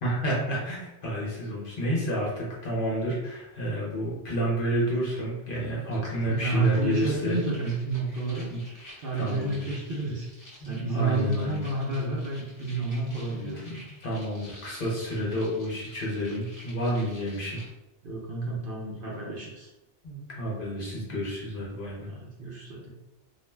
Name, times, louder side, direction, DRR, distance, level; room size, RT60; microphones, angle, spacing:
voice 1, 0.0-7.4 8.5-8.6 9.1-9.7 10.6-11.6 12.7-17.6 20.0-22.1, equal, 55° left, -4 dB, 0.8 m, -30 dB
sound 1, 5.2-5.3 5.5-17.7, left 1 dB, 20° left, 0.6 m, -51 dB
voice 2, 6.2-8.5 9.0-10.3 10.7-13.8 18.0-19.7 22.1-22.9, right 3 dB, 55° right, -4 dB, 0.7 m, -30 dB
2.4 x 2.1 x 3.2 m, 0.98 s
omnidirectional pair, 1.2 m